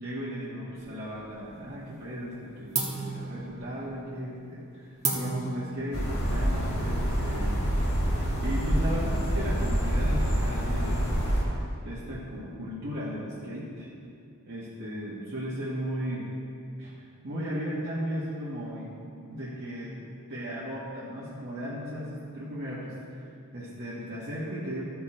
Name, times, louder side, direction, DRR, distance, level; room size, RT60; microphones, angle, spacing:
voice 1, 0.0-4.9 5.1-7.8 8.1-11.1 11.8-13.9 14.5-16.3 16.8-18.9 19.3-19.9 20.3-23.2 23.5-24.8, equal, 50° right, -9 dB, 1.5 m, -36 dB
sound 1, 0.8-1.7 2.0-2.4 2.7-7.9, right 4 dB, 30° right, 1.2 m, -35 dB
sound 2, 5.9-11.4, equal, 80° left, 2.5 m, -26 dB
13.0 x 5.9 x 4.4 m, 2.4 s
head